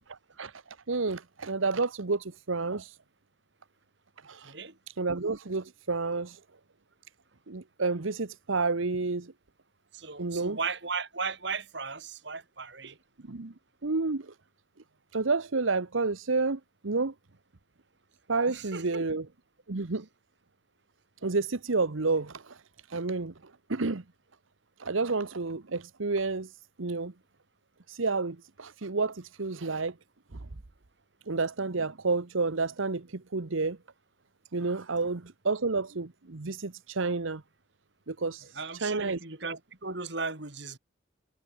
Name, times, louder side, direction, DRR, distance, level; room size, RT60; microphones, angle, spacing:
voice 1, 0.1-0.6 0.9-3.0 4.2-4.5 5.0-6.4 7.5-9.3 10.2-10.6 13.3-13.5 13.8-14.3 15.1-17.1 18.3-19.2 19.7-20.1 21.2-22.6 22.9-23.3 23.7-24.0 24.8-27.1 27.9-29.9 31.3-33.8 34.5-37.4 38.1-39.2, right 3 dB, 80° right, 1.0 m, -30 dB
voice 2, 4.4-4.8 9.9-13.0 18.5-19.0 38.5-40.8, right 4 dB, 55° right, 3.0 m, -36 dB
head